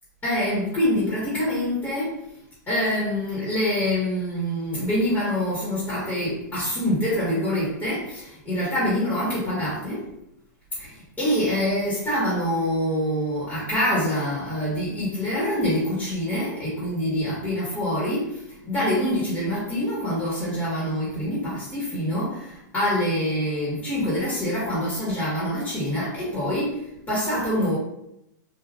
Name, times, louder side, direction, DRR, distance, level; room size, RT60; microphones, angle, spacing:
voice 1, 0.2-2.2 2.7-10.1 10.8-27.8, equal, 15° left, -7 dB, 1.3 m, -25 dB
3.5 x 2.5 x 2.4 m, 0.80 s
hypercardioid pair, 135°, 10 cm